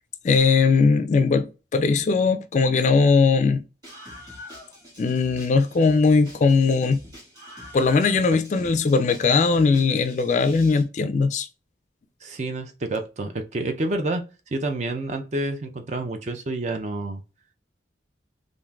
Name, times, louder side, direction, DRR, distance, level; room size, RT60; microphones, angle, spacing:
voice 1, 0.2-3.6 5.0-7.0 7.7-11.5, left 4 dB, 40° left, 0.3 m, -19 dB
Screaming, 3.8-10.8, left 1 dB, 25° right, 1.6 m, -45 dB
voice 2, 12.2-14.2 14.5-17.2, right 2 dB, 40° right, 0.4 m, -28 dB
3.6 x 2.5 x 2.3 m
head